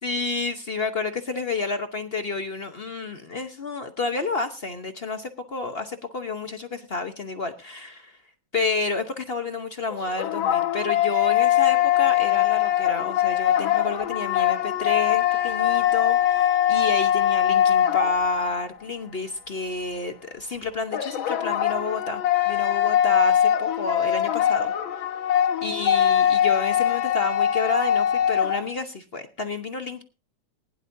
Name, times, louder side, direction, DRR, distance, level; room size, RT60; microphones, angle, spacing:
voice 1, 0.0-8.2 8.5-25.1 25.6-30.0, left 3 dB, 50° left, 7 dB, 0.7 m, -30 dB
sound 1, 9.9-18.6 20.9-28.7, left 10 dB, 75° left, 1.7 m, -22 dB
20.0 x 11.0 x 2.7 m, 0.30 s
omnidirectional pair, 2.3 m